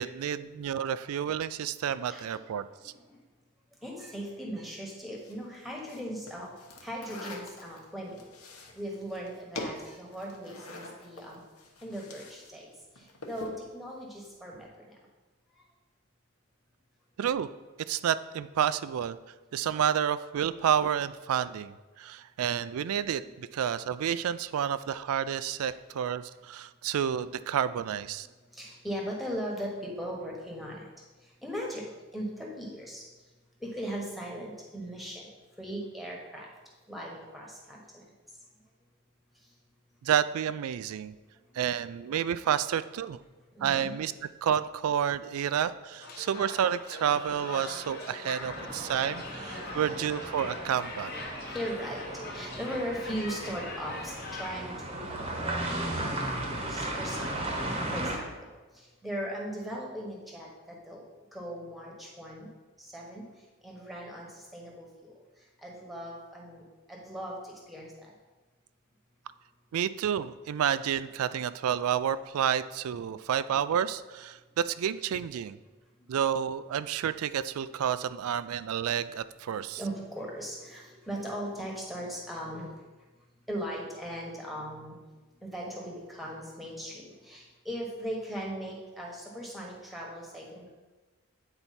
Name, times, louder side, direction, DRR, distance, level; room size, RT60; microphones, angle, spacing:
voice 1, 0.0-2.9 17.2-17.5 17.9-19.2 19.5-28.3 40.0-41.1 41.6-43.2 43.6-44.1 44.4-51.1 69.7-75.6 76.1-79.8, right 9 dB, 80° right, 15 dB, 0.3 m, -30 dB
voice 2, 2.1-2.4 2.9-3.2 3.8-6.5 6.8-8.3 8.7-11.4 11.8-12.7 13.0-14.9 28.5-30.9 31.4-33.0 33.6-35.3 35.6-36.5 36.9-38.0 43.5-43.9 49.4-49.8 51.5-52.0 52.3-55.5 55.9-56.1 56.7-57.3 57.9-58.5 58.7-61.0 61.3-62.5 62.8-63.2 63.6-65.1 65.6-66.6 66.9-68.1 79.8-82.7 83.5-85.0 85.4-90.7, equal, ahead, -2 dB, 1.2 m, -38 dB
sound 1, 5.2-12.5 12.8-13.6, left 2 dB, 90° left, 1.0 m, -44 dB
sound 2, 46.0-54.8, left 2 dB, 45° left, 0.9 m, -42 dB
sound 3, 48.4-58.2, right 1 dB, 25° right, 0.9 m, -36 dB
8.8 x 4.4 x 4.2 m, 1.2 s
head